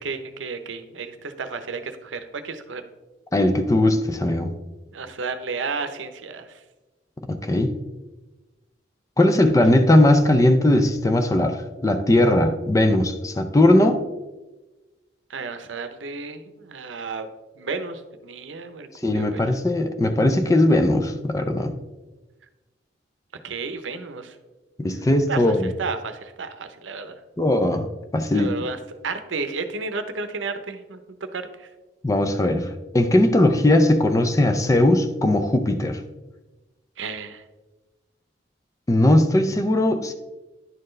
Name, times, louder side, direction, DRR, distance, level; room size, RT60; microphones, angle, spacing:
voice 1, 0.0-2.8 4.9-6.6 15.3-17.3 17.6-19.4 23.4-24.4 25.3-27.2 28.3-31.0 31.3-31.7 37.0-37.4, right 4 dB, 90° right, 9 dB, 0.7 m, -32 dB
voice 2, 3.3-4.5 7.3-7.8 9.2-11.6 11.8-14.0 19.0-21.7 24.8-25.7 27.4-27.9 28.1-28.5 32.0-32.7 32.9-36.0 38.9-40.1, left 1 dB, 15° left, 7 dB, 0.4 m, -19 dB
10.5 x 4.4 x 3.2 m, 1.1 s
head